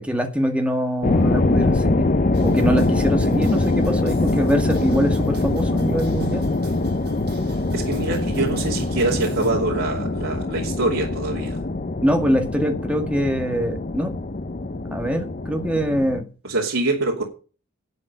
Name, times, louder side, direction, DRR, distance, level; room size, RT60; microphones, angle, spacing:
voice 1, 0.0-2.1 2.4-6.4 12.0-14.1 14.9-16.3, equal, 5° right, 1.8 m, -23 dB
sound 1, 1.0-16.2, left 2 dB, 40° left, 0.7 m, -23 dB
sound 2, 2.3-9.5, right 1 dB, 50° right, 6.5 m, -38 dB
voice 2, 7.7-11.6 16.4-17.2, right 2 dB, 85° right, 2.7 m, -24 dB
11.5 x 8.4 x 5.6 m
head